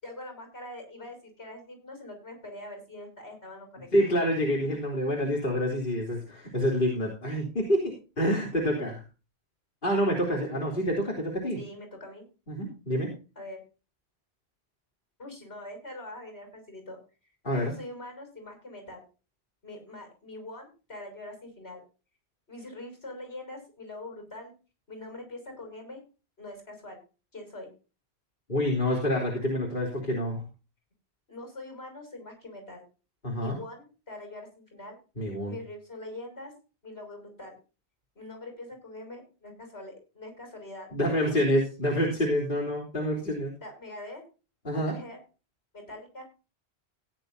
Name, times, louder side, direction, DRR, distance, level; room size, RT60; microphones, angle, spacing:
voice 1, 0.0-3.9 11.6-12.3 13.4-13.6 15.2-17.0 17.6-19.1 19.6-21.8 22.5-24.5 24.9-26.0 26.4-27.0 27.3-27.7 31.3-32.8 33.4-35.0 35.5-36.5 36.8-37.6 38.2-40.9 41.3-41.4 41.9-42.0 43.6-44.2 44.7-45.2 45.7-46.2, left 1 dB, 70° left, 4 dB, 6.7 m, -43 dB
voice 2, 3.9-9.0 9.8-11.6 12.5-13.1 17.4-17.7 28.5-30.4 33.2-33.6 35.2-35.6 40.9-43.5 44.6-45.0, equal, 50° left, -3 dB, 3.8 m, -27 dB
17.0 x 10.5 x 2.7 m, 0.32 s
omnidirectional pair, 1.1 m